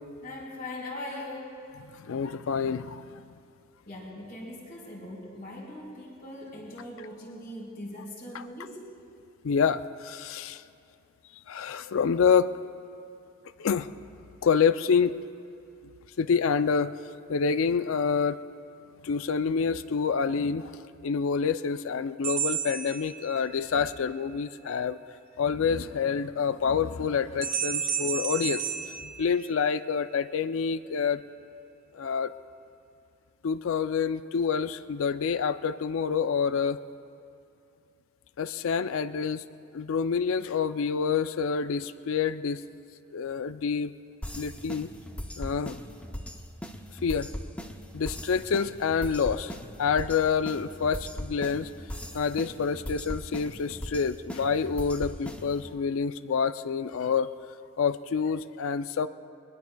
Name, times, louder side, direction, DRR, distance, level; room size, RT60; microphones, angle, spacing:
voice 1, 0.2-1.6 3.8-8.8, left 1 dB, 45° left, -4 dB, 4.5 m, -40 dB
voice 2, 2.1-3.2 9.4-10.6 11.5-12.5 13.6-13.9 14.4-15.1 16.2-16.9 17.3-18.4 19.0-20.7 21.0-25.0 25.4-28.6 29.0-31.2 31.9-32.3 33.4-36.8 38.4-39.4 39.7-42.6 43.1-43.9 44.4-44.9 45.4-45.8 47.0-47.3 47.9-49.5 49.8-51.7 52.1-57.3 57.8-59.1, left 6 dB, 65° left, 13 dB, 0.4 m, -27 dB
sound 1, 22.2-23.8 27.4-29.9, right 7 dB, 65° right, 1.9 m, -32 dB
sound 2, 44.2-55.7, equal, 5° left, 0.6 m, -39 dB
23.0 x 21.0 x 2.3 m, 2.6 s
head